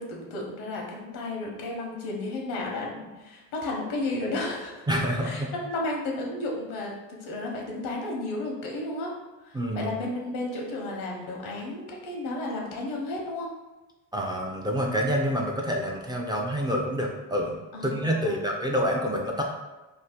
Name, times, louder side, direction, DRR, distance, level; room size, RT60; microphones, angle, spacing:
voice 1, 0.0-4.8 5.2-9.1 9.4-13.5 17.7-18.5, left 2 dB, 90° left, -1 dB, 0.8 m, -33 dB
voice 2, 4.9-5.5 9.5-9.9 14.1-19.4, equal, 15° right, -1 dB, 0.3 m, -27 dB
2.7 x 2.1 x 3.4 m, 1.1 s
supercardioid pair, 80°, 36 cm